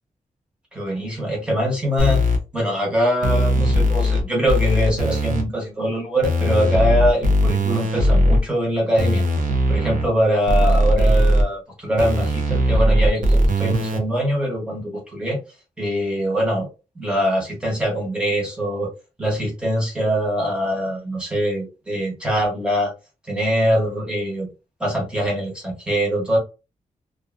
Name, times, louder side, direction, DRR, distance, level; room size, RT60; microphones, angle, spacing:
voice 1, 0.7-2.2 2.5-9.2 9.7-15.4 15.8-16.7 16.9-18.9 19.2-22.9 23.3-24.5 24.8-26.4, equal, 5° right, -2 dB, 1.0 m, -23 dB
sound 1, 2.0-2.4 3.2-4.2 4.5-5.4 6.2-8.4 9.0-10.0 10.5-11.4 12.0-14.0, equal, 85° right, 0.7 m, -18 dB
2.6 x 2.3 x 2.5 m, 0.30 s
wide cardioid pair, 170°, 13 cm